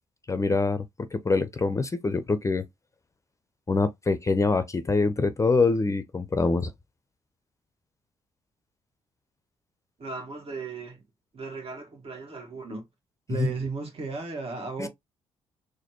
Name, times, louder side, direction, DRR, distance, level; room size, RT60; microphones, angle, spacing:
voice 1, 0.3-2.6 3.7-6.7 13.3-13.5 14.8-14.9, left 3 dB, 25° left, 0.6 m, -25 dB
voice 2, 10.0-11.0 11.3-12.9 13.3-14.9, right 4 dB, 45° right, 2.0 m, -35 dB
4.0 x 2.6 x 2.9 m
hypercardioid pair, 45°, 13 cm